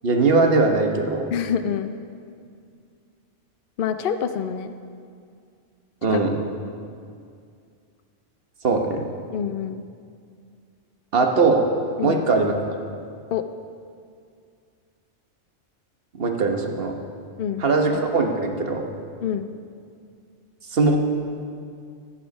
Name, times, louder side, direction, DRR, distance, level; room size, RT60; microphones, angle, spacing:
voice 1, 0.0-1.2 6.0-6.4 8.6-9.1 11.1-11.6 12.0-12.5 16.2-16.9 17.6-18.8 20.7-21.0, right 3 dB, 55° right, 3 dB, 1.3 m, -20 dB
voice 2, 1.3-1.9 3.8-4.7 6.1-6.2 9.3-9.8 12.0-12.2 13.3-13.5 17.4-17.6 19.2-19.5, left 8 dB, 60° left, 8 dB, 0.6 m, -26 dB
13.0 x 10.0 x 5.3 m, 2.3 s
omnidirectional pair, 1.3 m